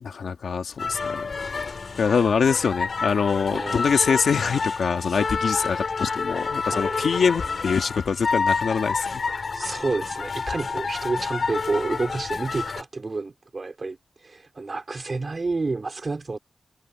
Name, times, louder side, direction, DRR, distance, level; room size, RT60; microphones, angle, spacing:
voice 1, 0.0-1.3 2.0-9.2, left 6 dB, 90° left, 1.8 m, -24 dB
sound 1, 0.8-12.8, left 4 dB, 55° left, 3.6 m, -28 dB
voice 2, 3.5-3.9 6.7-7.1 9.5-14.0 14.2-16.4, right 3 dB, 40° right, 4.0 m, -29 dB
wide cardioid pair, 130°, 0 cm